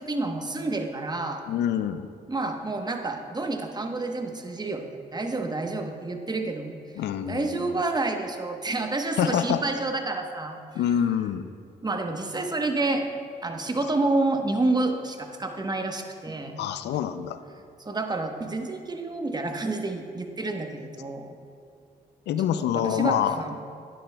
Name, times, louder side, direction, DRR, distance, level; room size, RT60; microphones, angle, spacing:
voice 1, 0.0-1.4 2.3-6.8 7.3-10.6 11.8-13.0 13.4-16.6 17.8-21.4 22.4-23.6, right 2 dB, 25° right, 4 dB, 1.0 m, -29 dB
voice 2, 1.5-2.1 7.0-7.8 9.2-9.6 10.7-11.5 16.6-17.4 22.3-23.4, left 9 dB, 80° left, 11 dB, 0.4 m, -26 dB
10.5 x 10.0 x 2.2 m, 2.3 s
supercardioid pair, 55°, 17 cm